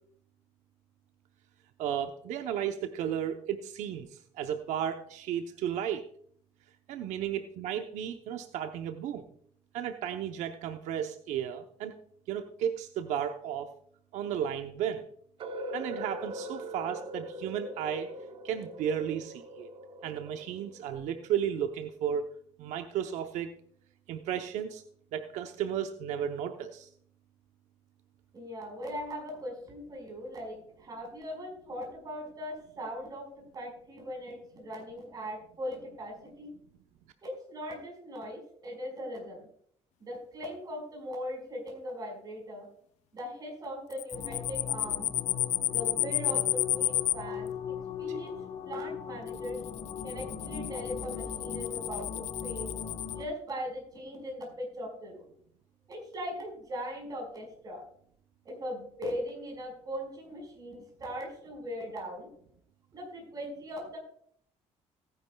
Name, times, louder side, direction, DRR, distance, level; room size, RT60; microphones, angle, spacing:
voice 1, 1.8-6.0 6.9-9.2 9.7-11.9 12.3-13.7 14.1-15.0 15.7-18.1 18.4-19.7 20.0-22.3 22.6-23.5 24.1-24.8 25.1-26.9 48.1-48.2, right 9 dB, 90° right, 7 dB, 0.8 m, -34 dB
sound 1, 15.4-21.3, equal, 50° right, 1.2 m, -41 dB
voice 2, 28.3-33.3 33.5-36.5 37.2-39.5 40.0-42.7 43.1-45.1 45.7-47.5 48.0-48.3 48.6-49.6 50.0-52.7 53.1-55.2 55.9-57.8 58.4-62.3 62.9-64.0, equal, 35° right, 1 dB, 5.0 m, -39 dB
sound 2, 43.9-47.1 49.3-53.1, left 14 dB, 75° left, 0.5 m, -31 dB
sound 3, 44.1-53.3, left 7 dB, 50° left, 1.1 m, -39 dB
18.0 x 10.0 x 2.3 m, 0.63 s
cardioid pair, 135°, 12 cm